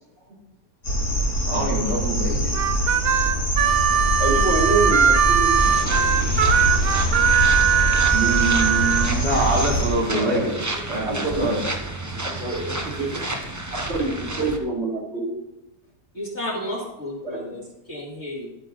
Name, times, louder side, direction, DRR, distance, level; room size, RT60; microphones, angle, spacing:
sound 1, 0.8-9.9, equal, 80° left, 3.0 m, -24 dB
voice 1, 1.4-2.9 8.1-10.5 10.9-11.6, right 2 dB, 85° right, -4 dB, 3.5 m, -25 dB
Harmonica, 2.5-9.1, right 8 dB, 70° right, 0.5 m, -20 dB
voice 2, 4.2-5.6 8.2-8.3 10.1-10.6 11.1-11.5 12.2-13.2 13.7-15.4 17.2-17.4, right 3 dB, 40° right, 0 dB, 2.1 m, -26 dB
sound 2, 5.6-14.6, right 2 dB, 20° right, 0.5 m, -31 dB
voice 3, 16.1-18.5, left 1 dB, 45° left, -5 dB, 2.1 m, -32 dB
10.5 x 8.4 x 3.8 m, 0.92 s
omnidirectional pair, 1.8 m